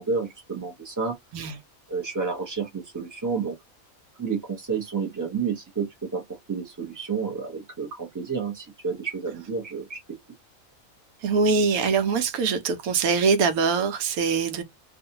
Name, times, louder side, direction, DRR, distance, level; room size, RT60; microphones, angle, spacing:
voice 1, 0.0-1.2 1.9-3.6 4.2-10.0, right 5 dB, 25° right, 0.4 m, -30 dB
voice 2, 11.2-14.6, right 5 dB, 85° right, 1.1 m, -23 dB
2.5 x 2.4 x 2.7 m
omnidirectional pair, 1.5 m